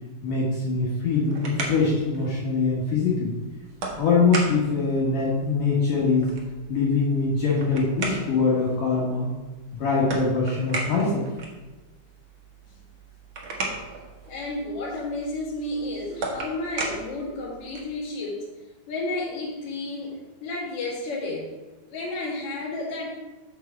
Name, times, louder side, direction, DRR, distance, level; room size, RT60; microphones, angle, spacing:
voice 1, 0.2-3.3 4.0-6.3 6.7-9.3 9.8-11.3, left 4 dB, 65° left, -5 dB, 3.0 m, -23 dB
sound 1, 1.0-18.0, right 3 dB, 55° right, 1.4 m, -37 dB
voice 2, 14.3-18.5 18.9-21.5 21.8-23.1, left 2 dB, 45° left, -5 dB, 2.9 m, -32 dB
7.1 x 4.8 x 7.1 m, 1.1 s
omnidirectional pair, 4.2 m